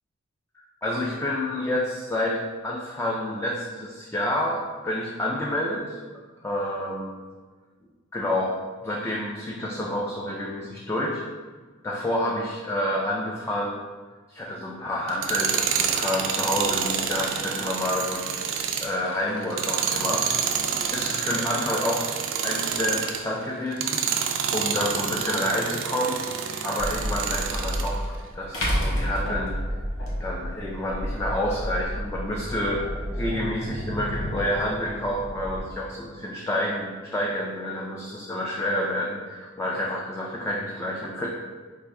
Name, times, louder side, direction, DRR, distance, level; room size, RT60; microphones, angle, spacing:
voice 1, 0.8-6.0 6.4-7.2 8.1-8.6 8.8-11.2 11.8-13.8 14.3-18.3 18.8-20.3 20.9-26.2 26.6-29.6 30.2-32.9 33.1-41.3, left 1 dB, 15° left, -2 dB, 0.3 m, -29 dB
Tools, 15.1-23.3 23.7-27.9, right 7 dB, 65° right, 0.4 m, -28 dB
sound 1, 26.8-35.6, equal, 55° left, 0.9 m, -33 dB
sound 2, 28.5-30.1, equal, 80° left, 0.9 m, -27 dB
3.4 x 2.5 x 4.5 m, 1.4 s
head